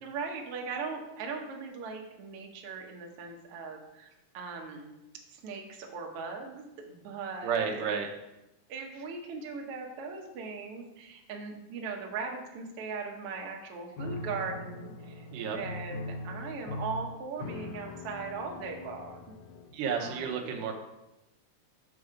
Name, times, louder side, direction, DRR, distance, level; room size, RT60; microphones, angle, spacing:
voice 1, 0.0-4.1 4.3-4.9 5.3-7.9 8.7-19.3 20.0-20.4, right 4 dB, 60° right, 1 dB, 1.6 m, -39 dB
voice 2, 7.4-8.1 15.3-15.6 19.7-20.7, right 6 dB, 90° right, 1 dB, 2.5 m, -31 dB
Piano, 14.0-19.9, left 2 dB, 80° left, 1.9 m, -41 dB
6.3 x 6.1 x 4.9 m, 0.94 s
omnidirectional pair, 3.7 m